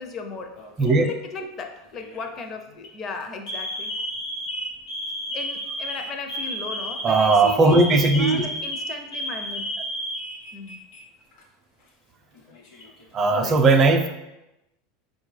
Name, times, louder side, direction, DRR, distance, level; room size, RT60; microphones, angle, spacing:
voice 1, 0.0-0.6 1.0-3.9 5.3-9.6 10.5-10.8 13.3-13.7, left 4 dB, 40° left, 6 dB, 0.5 m, -36 dB
Alarm, 0.6-1.1 1.9-2.2 2.7-2.9 3.5-11.0 11.3-11.4 12.3-13.0, equal, 65° left, 1.0 m, -32 dB
voice 2, 7.0-8.5 13.1-14.1, right 3 dB, 30° right, 5 dB, 0.5 m, -18 dB
4.6 x 2.2 x 3.2 m, 0.93 s
supercardioid pair, 115°, 0 cm